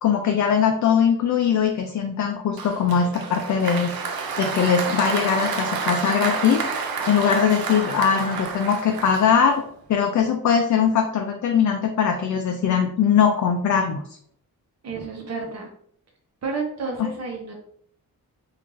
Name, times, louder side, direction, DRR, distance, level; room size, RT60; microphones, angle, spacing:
voice 1, 0.0-3.9 4.4-6.6 7.1-9.6 9.9-14.0 17.0-17.1, left 7 dB, 55° left, 3 dB, 0.4 m, -21 dB
Applause, 2.6-9.7, right 5 dB, 70° right, 0.6 m, -29 dB
voice 2, 14.8-15.7 16.4-17.5, right 4 dB, 45° right, 0 dB, 0.8 m, -30 dB
3.2 x 2.5 x 3.7 m, 0.64 s
wide cardioid pair, 145°, 37 cm